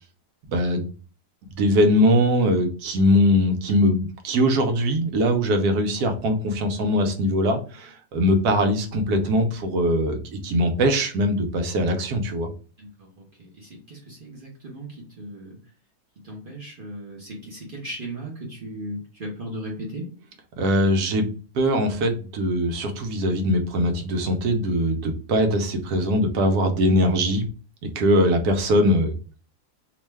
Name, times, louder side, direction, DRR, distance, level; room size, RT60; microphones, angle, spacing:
voice 1, 0.5-0.9 1.5-10.2 10.4-12.5 20.6-21.2 21.5-27.4 27.8-29.2, equal, 75° right, 5 dB, 1.1 m, -21 dB
voice 2, 12.8-15.6 16.2-20.1, right 1 dB, 45° right, -2 dB, 0.7 m, -37 dB
2.9 x 2.2 x 3.2 m, 0.38 s
omnidirectional pair, 1.7 m